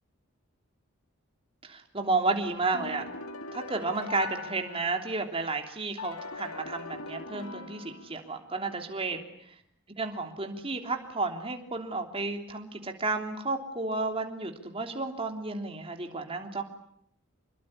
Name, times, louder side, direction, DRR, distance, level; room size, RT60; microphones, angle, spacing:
voice 1, 1.6-3.0 3.5-9.2 10.0-16.6, right 3 dB, 25° right, 4 dB, 3.3 m, -32 dB
sound 1, 2.7-5.4 6.0-8.5, left 3 dB, 80° left, 2.5 m, -41 dB
27.0 x 22.5 x 9.9 m, 0.69 s
head